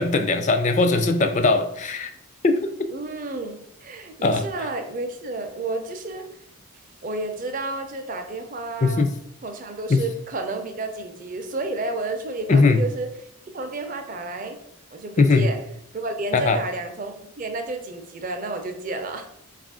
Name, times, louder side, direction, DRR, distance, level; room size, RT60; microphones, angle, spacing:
voice 1, 0.0-2.1 2.4-2.7 4.2-4.4 8.8-9.1 9.9-10.0 12.5-12.8 15.2-15.5 16.3-16.6, left 3 dB, 35° left, 8 dB, 0.3 m, -19 dB
voice 2, 2.9-6.3 7.0-9.1 9.4-13.1 13.5-14.6 14.9-15.6 15.9-19.3, right 2 dB, 35° right, 5 dB, 0.5 m, -31 dB
4.7 x 2.4 x 3.6 m, 0.76 s
head